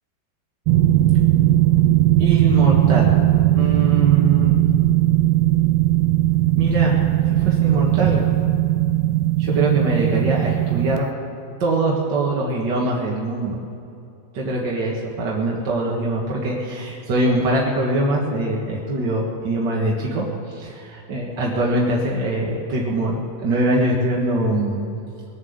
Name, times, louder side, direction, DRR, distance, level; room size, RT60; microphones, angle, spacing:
sound 1, 0.7-11.0, right 14 dB, 85° right, 2.5 m, -18 dB
voice 1, 2.2-3.2 3.5-4.5 6.6-7.0 7.4-8.2 9.4-11.1 11.6-13.6 14.3-24.9, right 2 dB, 50° right, -3 dB, 1.4 m, -22 dB
21.5 x 7.5 x 8.0 m, 2.7 s
omnidirectional pair, 4.4 m